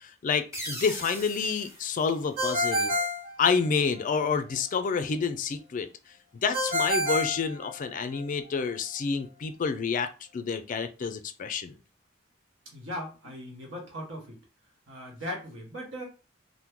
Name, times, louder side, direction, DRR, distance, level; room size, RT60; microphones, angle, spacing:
voice 1, 0.0-2.9 3.4-5.9 6.4-11.7, left 5 dB, 45° left, 0.3 m, -29 dB
sound 1, 0.5-3.1, equal, 15° right, 0.9 m, -41 dB
Ringtone, 2.4-4.0 6.5-8.2, left 1 dB, 45° right, 0.8 m, -28 dB
voice 2, 12.7-14.4 14.9-16.0, equal, 75° right, 1.2 m, -38 dB
2.9 x 2.1 x 3.5 m
head